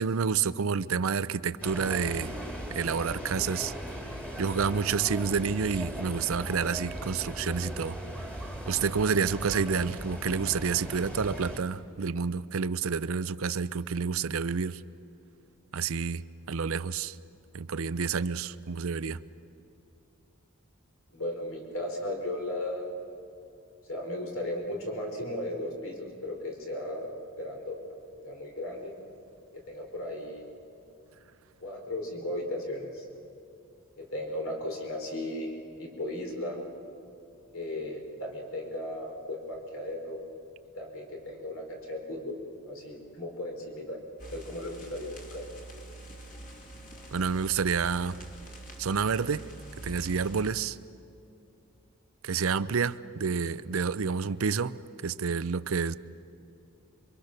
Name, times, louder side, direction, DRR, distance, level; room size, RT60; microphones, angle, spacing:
voice 1, 0.0-2.3 2.7-3.7 4.4-8.0 8.7-14.8 15.7-17.2 17.5-19.2 47.1-48.2 48.8-49.5 49.8-50.8 52.2-54.8 55.0-56.0, right 5 dB, 70° right, 0.6 m, -29 dB
sound 1, 1.6-11.6, equal, 5° left, 2.1 m, -38 dB
voice 2, 21.1-22.9 23.8-27.8 28.2-28.9 29.5-30.4 31.6-33.1 34.0-36.6 37.5-40.2 40.7-42.4 42.6-45.5, left 1 dB, 65° left, 4.4 m, -36 dB
sound 2, 44.2-50.5, right 2 dB, 35° left, 3.1 m, -45 dB
27.5 x 23.0 x 6.6 m
head